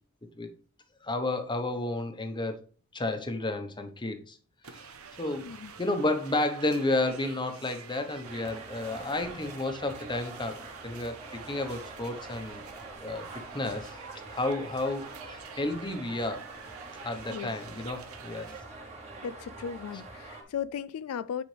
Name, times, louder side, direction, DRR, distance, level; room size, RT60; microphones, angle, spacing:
voice 1, 1.0-2.6 2.9-4.4 4.6-4.9 5.2-5.5 5.8-12.6 13.0-13.3 13.5-14.0 14.3-16.5 17.0-18.5, left 2 dB, 20° left, 1.1 m, -31 dB
sound 1, 4.6-18.6, right 6 dB, 85° right, 1.0 m, -48 dB
sound 2, 8.2-20.4, right 3 dB, 30° right, 2.4 m, -45 dB
voice 2, 19.2-21.4, left 7 dB, 90° left, 0.4 m, -36 dB
9.2 x 5.0 x 3.4 m
head